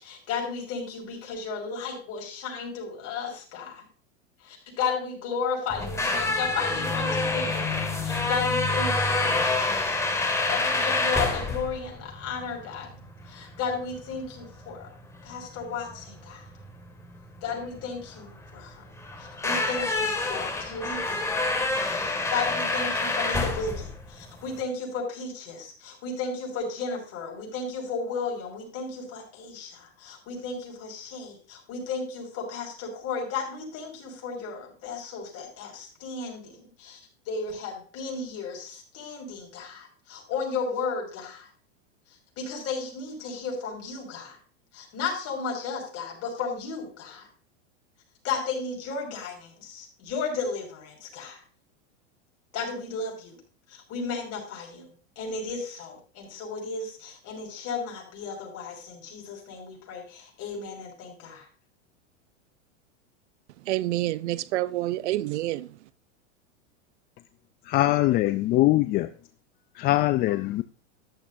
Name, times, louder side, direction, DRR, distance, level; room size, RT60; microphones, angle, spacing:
voice 1, 0.0-3.9 4.4-9.6 10.5-12.9 13.3-14.9 15.2-16.5 17.4-18.9 19.2-21.4 22.3-37.0 37.3-41.5 42.4-44.4 44.7-47.3 48.2-51.4 52.5-53.4 53.7-54.9 55.2-61.5, left 4 dB, 40° left, 5.7 m, -34 dB
sound 1, 5.7-24.6, left 3 dB, 10° left, 2.1 m, -28 dB
voice 2, 63.7-65.7, right 16 dB, 70° right, 0.6 m, -28 dB
voice 3, 67.7-69.1 69.8-70.6, left 16 dB, 25° left, 0.4 m, -22 dB
13.5 x 11.0 x 2.7 m
hypercardioid pair, 115°, 36 cm